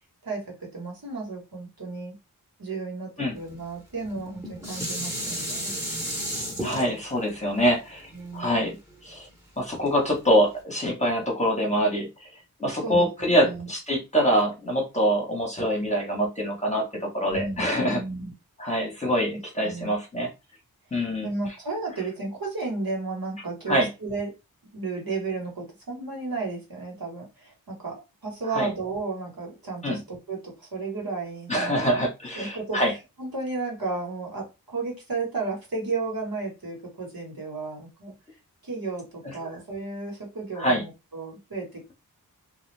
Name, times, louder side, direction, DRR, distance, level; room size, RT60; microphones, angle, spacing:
voice 1, 0.2-2.2 2.6-5.8 8.1-8.5 12.8-13.1 13.4-13.7 17.3-18.3 19.6-19.9 20.9-24.3 24.7-31.8 32.3-38.1 38.6-41.9, right 3 dB, 70° right, 1.3 m, -33 dB
Dishes pots and pans, 4.0-9.3 9.9-10.0, equal, 5° right, 1.1 m, -33 dB
voice 2, 6.6-8.1 8.3-8.8 9.0-9.3 9.6-12.3 12.6-18.0 18.6-20.3 20.9-21.3 23.7-23.9 28.5-28.7 29.8-30.0 31.5-32.9 39.4-39.5 40.6-40.8, equal, 20° left, 1.0 m, -25 dB
2.3 x 2.3 x 3.2 m
wide cardioid pair, 75°, 37 cm